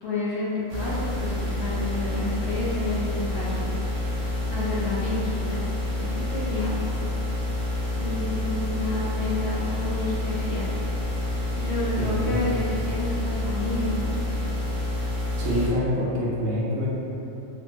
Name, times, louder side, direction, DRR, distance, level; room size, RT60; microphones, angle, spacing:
voice 1, 0.0-3.7 4.5-5.6 5.9-6.8 7.9-10.7 11.5-14.1, left 2 dB, 60° left, -8 dB, 0.9 m, -30 dB
sound 1, 0.7-15.7, left 2 dB, 45° right, 0.5 m, -28 dB
voice 2, 12.0-12.5 15.4-16.9, equal, 65° right, -6 dB, 0.9 m, -26 dB
3.2 x 2.0 x 2.9 m, 2.9 s
omnidirectional pair, 1.4 m